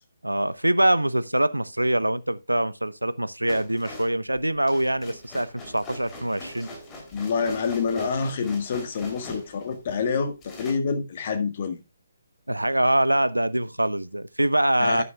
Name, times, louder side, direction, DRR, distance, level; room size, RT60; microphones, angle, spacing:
voice 1, 0.2-6.7 12.5-15.0, right 1 dB, 80° right, 0.7 m, -24 dB
sound 1, 3.5-10.0 10.4-10.7, left 1 dB, 15° left, 3.1 m, -41 dB
voice 2, 7.1-11.8 14.8-15.0, left 5 dB, 35° left, 1.8 m, -27 dB
12.0 x 9.7 x 2.3 m
figure-of-eight pair, 140°, 0 cm